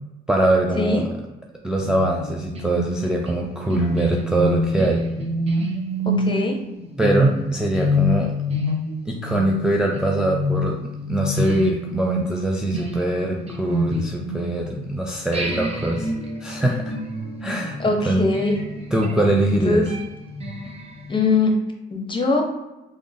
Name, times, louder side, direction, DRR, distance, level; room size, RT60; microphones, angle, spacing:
voice 1, 0.3-1.1 1.6-5.0 7.0-8.3 9.1-16.1 16.4-17.0 17.4-17.8 18.1-18.3 18.9-19.8, right 1 dB, 5° right, -1 dB, 0.4 m, -22 dB
sound 1, 1.8-14.9 15.3-21.2, equal, 30° right, 0.8 m, -27 dB
voice 2, 6.0-6.6 17.8-18.5 19.6-19.9 21.1-21.5 21.9-22.4, left 3 dB, 25° left, 2 dB, 0.8 m, -21 dB
3.7 x 2.1 x 3.4 m, 1.0 s
cardioid pair, 90°, 20 cm